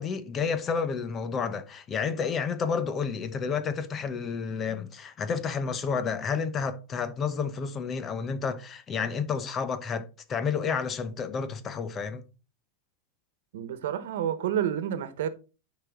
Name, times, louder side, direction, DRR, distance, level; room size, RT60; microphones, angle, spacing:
voice 1, 0.0-12.2, left 5 dB, 25° left, 0.9 m, -30 dB
voice 2, 13.5-15.3, right 9 dB, 75° right, 1.2 m, -29 dB
9.6 x 5.0 x 3.8 m
supercardioid pair, 150°, 0 cm